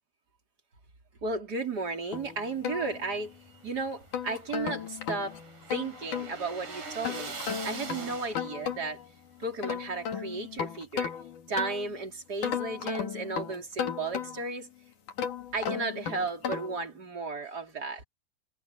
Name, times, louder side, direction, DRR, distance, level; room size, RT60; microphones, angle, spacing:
voice 1, 1.2-5.4 5.7-7.4 7.6-9.0 9.4-11.1 11.5-14.7 15.5-18.0, right 3 dB, 25° right, 4.3 m, -34 dB
sound 1, 2.1-3.5 3.9-6.3 7.0-9.1 9.4-12.0 12.4-14.6 15.1-16.8, left 8 dB, 55° left, 3.8 m, -35 dB
sound 2, 3.3-8.8, right 3 dB, 50° right, 7.5 m, -43 dB
omnidirectional pair, 4.4 m